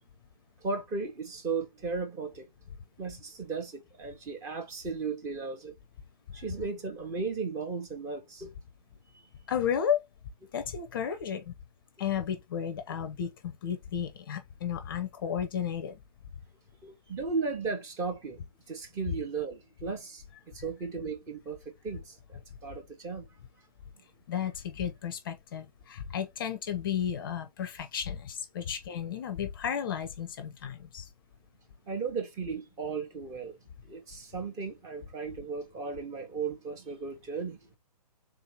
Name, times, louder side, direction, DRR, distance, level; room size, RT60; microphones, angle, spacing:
voice 1, 0.6-2.5 3.0-5.7 6.3-8.5 16.8-18.4 18.7-20.2 20.5-21.6 21.8-23.2 31.9-33.6 33.9-37.6, right 4 dB, 15° right, 0.8 m, -35 dB
voice 2, 9.5-10.0 10.5-11.5 12.0-16.0 24.3-31.1, left 8 dB, 35° left, 0.6 m, -33 dB
3.6 x 2.8 x 3.2 m
figure-of-eight pair, 135°, 21 cm